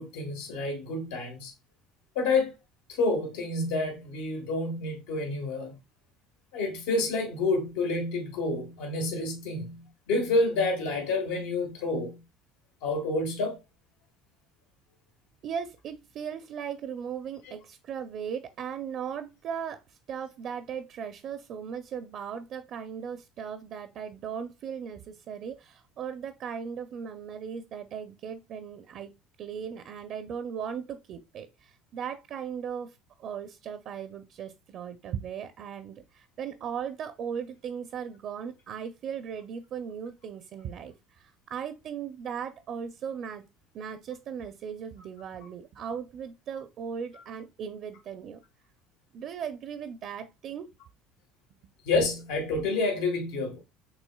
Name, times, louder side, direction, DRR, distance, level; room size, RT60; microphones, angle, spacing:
voice 1, 0.0-1.5 2.1-2.5 3.0-5.7 6.5-12.2 12.8-13.6 51.8-53.6, left 2 dB, 85° left, 1.3 m, -29 dB
voice 2, 15.4-19.8 20.1-29.1 29.4-43.4 43.7-48.4 49.1-50.7, right 7 dB, 55° right, 0.4 m, -37 dB
6.2 x 2.9 x 2.2 m
cardioid pair, 115°, 0 cm